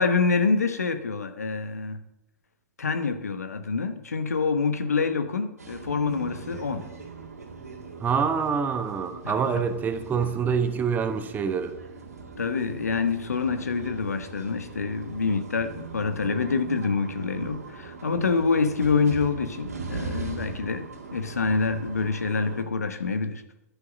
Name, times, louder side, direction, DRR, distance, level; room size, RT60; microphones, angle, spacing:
voice 1, 0.0-2.0 2.8-6.9 9.2-9.4 12.4-23.4, left 4 dB, 80° left, 1.0 m, -26 dB
sound 1, 5.6-22.6, right 4 dB, 80° right, 2.1 m, -40 dB
voice 2, 8.0-11.7, right 6 dB, 20° right, 1.0 m, -26 dB
10.5 x 9.6 x 5.1 m
figure-of-eight pair, 105°, 8 cm